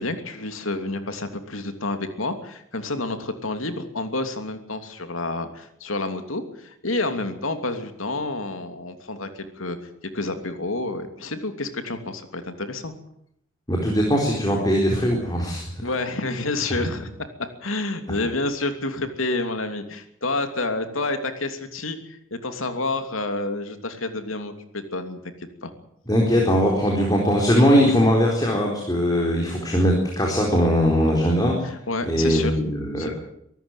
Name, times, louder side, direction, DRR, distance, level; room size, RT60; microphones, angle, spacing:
voice 1, 0.0-9.8 10.1-12.9 15.8-17.1 17.6-25.7 31.6-33.1, left 2 dB, 80° left, 7 dB, 2.9 m, -29 dB
voice 2, 13.7-15.6 26.1-31.7 32.0-33.1, equal, 20° left, 0 dB, 4.2 m, -20 dB
24.0 x 14.0 x 9.2 m, 0.72 s
head